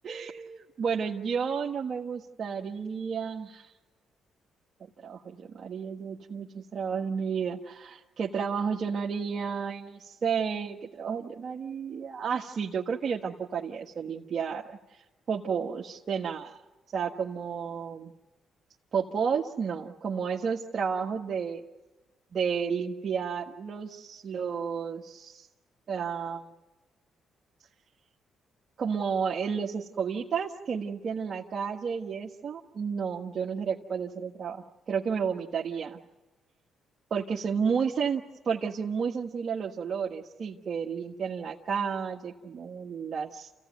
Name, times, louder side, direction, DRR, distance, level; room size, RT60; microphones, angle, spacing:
voice 1, 0.0-3.7 5.0-16.6 16.9-18.1 18.9-21.6 22.3-25.5 25.9-26.5 28.8-36.0 37.1-38.2 38.4-43.5, right 6 dB, 55° right, -2 dB, 1.5 m, -32 dB
28.5 x 16.0 x 9.3 m, 1.2 s
cardioid pair, 75°, 0 cm